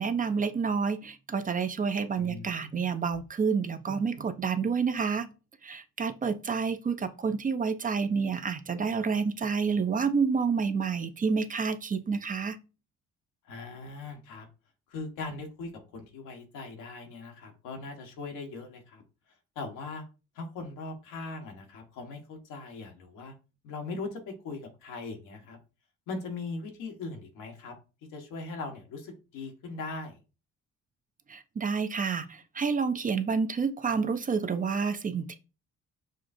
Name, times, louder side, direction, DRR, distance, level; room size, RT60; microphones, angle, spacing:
voice 1, 0.0-5.3 5.6-12.6 31.3-35.4, right 5 dB, 30° right, 0.4 m, -29 dB
voice 2, 2.2-2.9 13.4-14.5 14.9-19.0 19.5-20.0 20.3-23.3 23.6-25.6 26.1-27.8 28.1-30.2, left 3 dB, 90° left, 1.1 m, -40 dB
6.3 x 2.5 x 2.5 m
cardioid pair, 90°, 30 cm